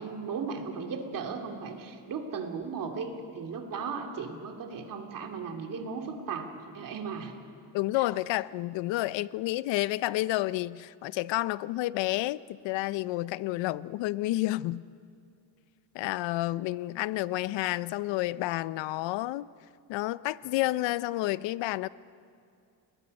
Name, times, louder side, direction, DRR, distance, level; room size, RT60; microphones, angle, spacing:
voice 1, 0.0-7.3 7.9-8.0, right 5 dB, 50° right, 2.6 m, -36 dB
voice 2, 7.7-14.8 15.9-19.5 19.9-21.9, left 17 dB, 85° left, 0.6 m, -30 dB
29.5 x 20.5 x 5.3 m
cardioid pair, 140°, 43 cm